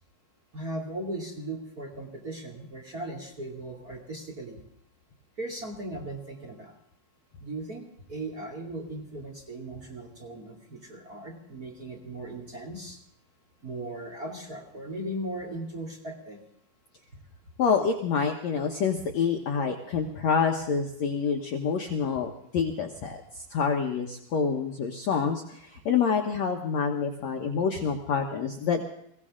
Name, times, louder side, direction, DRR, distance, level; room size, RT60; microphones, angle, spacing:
voice 1, 0.5-4.6 5.4-6.7 7.4-13.0 13.6-16.4, right 1 dB, 25° right, -1 dB, 2.6 m, -38 dB
voice 2, 17.6-28.8, left 6 dB, 65° left, 2 dB, 1.8 m, -27 dB
23.0 x 16.0 x 3.7 m, 0.72 s
omnidirectional pair, 4.3 m